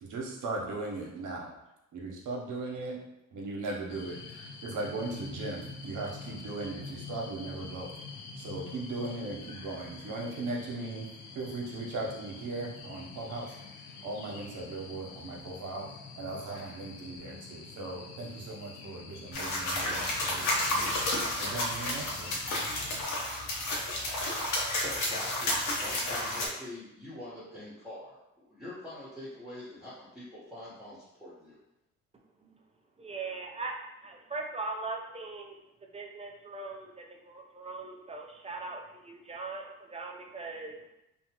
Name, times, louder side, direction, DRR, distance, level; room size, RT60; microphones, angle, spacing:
voice 1, 0.0-1.5 1.9-3.0 3.3-7.9 8.4-11.1 11.3-15.9 16.1-20.9 21.4-22.4, right 2 dB, 65° right, -1 dB, 0.9 m, -38 dB
sound 1, 3.9-23.0, left 4 dB, 90° left, 0.5 m, -46 dB
sound 2, 19.3-26.5, left 1 dB, 65° left, 0.9 m, -31 dB
voice 2, 24.4-31.6, left 1 dB, ahead, -10 dB, 1.1 m, -45 dB
voice 3, 33.0-35.6 35.9-40.8, right 3 dB, 20° right, 1 dB, 0.5 m, -40 dB
2.8 x 2.2 x 2.9 m, 0.89 s
supercardioid pair, 75°, 33 cm